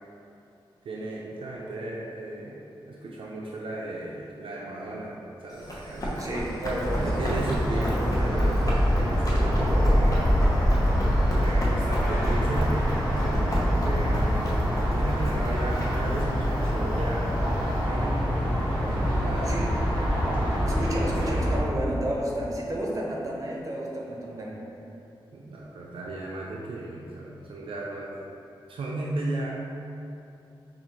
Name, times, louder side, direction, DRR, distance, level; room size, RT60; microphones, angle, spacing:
voice 1, 0.8-2.6 2.9-6.5 7.0-10.4 11.3-19.8 20.8-21.5 25.3-28.2 28.7-29.5, right 2 dB, 75° right, -3 dB, 0.4 m, -35 dB
Run, 5.5-17.8, equal, 40° left, 0.8 m, -33 dB
voice 2, 6.2-7.2 19.5-19.7 20.6-24.6, right 1 dB, 40° right, -3 dB, 0.7 m, -32 dB
sound 1, 6.8-21.6, equal, 10° left, 1.5 m, -25 dB
4.9 x 2.4 x 2.9 m, 2.8 s
wide cardioid pair, 85°, 9 cm